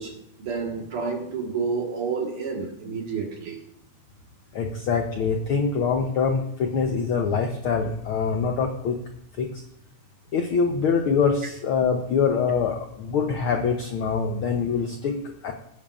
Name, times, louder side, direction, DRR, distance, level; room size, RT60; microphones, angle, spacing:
voice 1, 0.0-3.6, right 5 dB, 50° right, 2 dB, 2.2 m, -30 dB
voice 2, 4.5-9.0 9.4-9.6 10.3-15.5, left 5 dB, 90° left, 4 dB, 1.1 m, -24 dB
18.5 x 10.5 x 2.4 m, 0.79 s
omnidirectional pair, 3.5 m